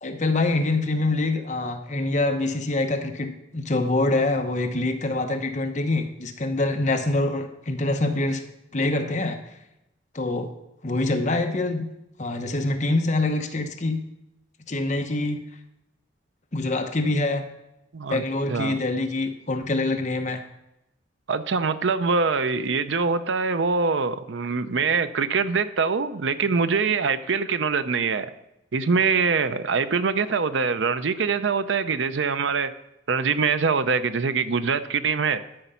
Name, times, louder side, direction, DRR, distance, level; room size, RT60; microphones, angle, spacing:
voice 1, 0.0-8.4 8.7-9.4 10.1-10.5 10.8-11.9 12.2-14.0 14.7-15.4 16.5-17.4 18.1-20.4, left 2 dB, 40° left, 5 dB, 0.9 m, -25 dB
voice 2, 21.3-28.3 28.7-32.7 33.1-35.4, right 5 dB, 80° right, 12 dB, 0.6 m, -24 dB
12.5 x 5.1 x 5.7 m, 0.88 s
head